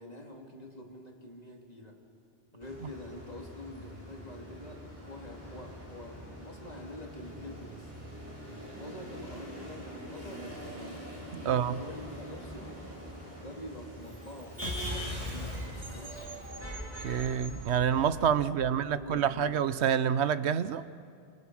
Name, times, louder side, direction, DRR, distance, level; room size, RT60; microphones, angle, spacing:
voice 1, 0.0-2.0 2.5-7.9 8.5-10.6 11.4-12.8 13.3-14.6 15.1-16.2 17.8-19.6, left 1 dB, 35° left, 3.1 m, -46 dB
Motor vehicle (road), 2.6-18.3, equal, 15° right, 6.6 m, -44 dB
voice 2, 11.3-11.8 17.0-20.8, right 8 dB, 85° right, 1.0 m, -27 dB
sound 1, 14.6-19.5, equal, 30° right, 4.3 m, -40 dB
25.5 x 25.0 x 6.3 m
omnidirectional pair, 1.1 m